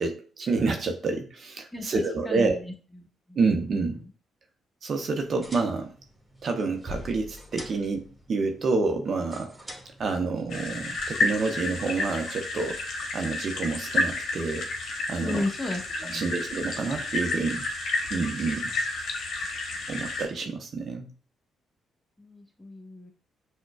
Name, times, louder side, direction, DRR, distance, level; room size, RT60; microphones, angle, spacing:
voice 1, 0.0-2.6 3.4-4.0 4.8-5.9 6.4-9.7 10.0-12.8 13.1-14.7 15.1-15.4 16.0-17.7 18.1-18.7 19.9-21.1, right 4 dB, 50° right, 5 dB, 0.7 m, -28 dB
voice 2, 1.7-4.1 15.2-16.4 22.2-23.1, left 2 dB, 15° left, 2 dB, 1.1 m, -35 dB
sound 1, 5.2-11.1, equal, 10° right, 1.5 m, -45 dB
sound 2, 10.5-20.3, left 2 dB, 60° left, 0.9 m, -31 dB
5.9 x 2.2 x 2.3 m, 0.39 s
hypercardioid pair, 50°, 0 cm